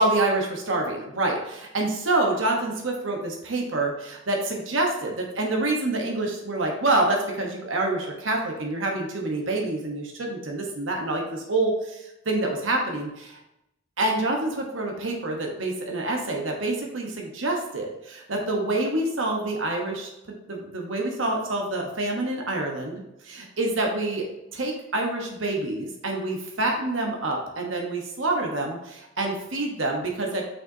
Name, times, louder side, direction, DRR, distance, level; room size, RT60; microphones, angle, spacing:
voice 1, 0.0-13.4 14.0-20.1 20.5-24.3 24.5-30.5, right 2 dB, 80° right, 1 dB, 1.1 m, -27 dB
6.5 x 6.0 x 2.8 m, 0.90 s
head